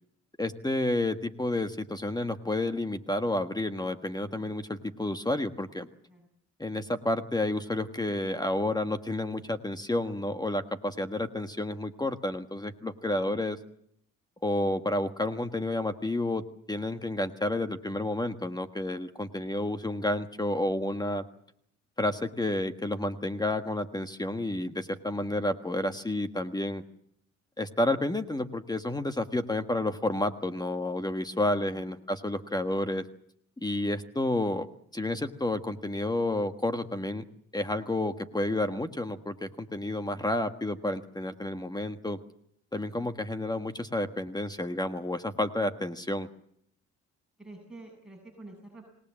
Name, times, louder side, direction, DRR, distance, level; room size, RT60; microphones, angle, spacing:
voice 1, 0.4-5.9 6.6-13.6 14.4-16.4 16.7-21.2 22.0-26.8 27.6-33.0 33.6-34.7 34.9-37.2 37.5-42.2 42.7-46.3, left 1 dB, 15° left, 8 dB, 1.4 m, -30 dB
voice 2, 47.4-48.9, right 2 dB, ahead, -1 dB, 7.3 m, -48 dB
26.5 x 19.0 x 7.6 m, 0.70 s
cardioid pair, 90°, 30 cm